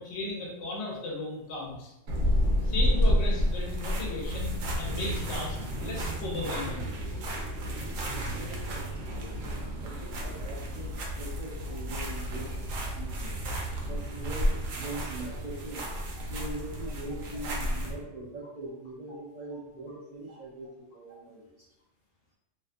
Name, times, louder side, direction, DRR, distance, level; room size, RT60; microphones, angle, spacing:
voice 1, 0.0-1.9 2.6-6.9 13.5-13.6, left 2 dB, 70° left, -3 dB, 0.8 m, -36 dB
sound 1, 2.1-17.9, equal, 85° right, 0.9 m, -31 dB
voice 2, 8.1-15.9 16.3-21.7, right 2 dB, 55° right, -7 dB, 0.5 m, -42 dB
2.5 x 2.2 x 2.5 m, 0.92 s
omnidirectional pair, 1.3 m